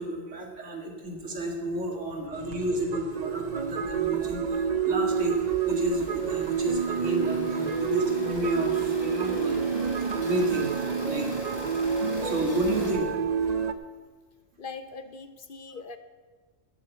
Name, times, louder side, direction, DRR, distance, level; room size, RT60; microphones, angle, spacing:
voice 1, 0.0-11.6 12.2-13.1, right 1 dB, 70° right, 2 dB, 2.3 m, -31 dB
voice 2, 0.7-1.1 1.8-2.6 14.6-16.0, left 4 dB, 50° left, 11 dB, 0.8 m, -43 dB
sound 1, 2.3-13.7, right 7 dB, 45° right, 0.6 m, -28 dB
sound 2, 5.1-12.9, left 1 dB, 85° left, 3.2 m, -42 dB
16.5 x 6.3 x 8.2 m, 1.4 s
omnidirectional pair, 1.3 m